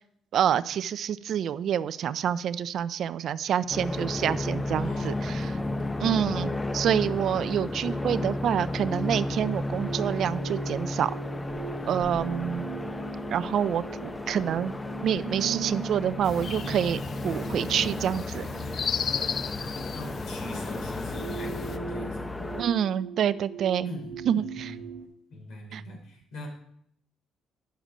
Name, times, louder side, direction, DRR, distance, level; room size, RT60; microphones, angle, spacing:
voice 1, 0.3-5.5 6.0-11.1 11.9-12.6 13.3-14.8 15.0-18.5 22.6-23.9 24.3-24.8 25.7-25.8, right 9 dB, 65° right, 16 dB, 0.4 m, -27 dB
sound 1, 3.7-22.6, left 1 dB, 15° left, 0.7 m, -33 dB
voice 2, 4.8-6.4 11.7-12.8 19.0-22.4 23.8-24.8 25.3-26.5, left 1 dB, 80° left, 1 dB, 3.4 m, -43 dB
sound 2, 9.8-25.1, right 9 dB, 90° right, 1.2 m, -41 dB
sound 3, 16.2-21.8, left 7 dB, 50° left, 0.4 m, -35 dB
10.0 x 6.6 x 5.0 m, 0.69 s
supercardioid pair, 70°, 0 cm